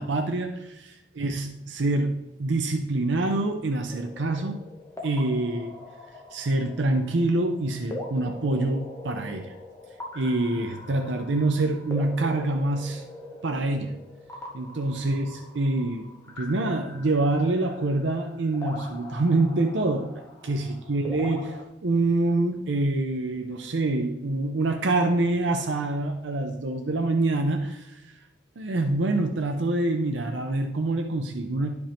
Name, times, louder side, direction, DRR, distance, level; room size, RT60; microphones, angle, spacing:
voice 1, 0.0-4.6 5.0-5.8 6.3-9.5 10.1-13.0 13.4-14.0 14.5-16.1 16.4-20.1 20.4-28.0 28.6-31.7, right 2 dB, 70° right, 5 dB, 0.6 m, -26 dB
sound 1, 3.9-21.6, left 2 dB, 15° left, 0.9 m, -42 dB
11.5 x 5.2 x 3.0 m, 0.90 s
head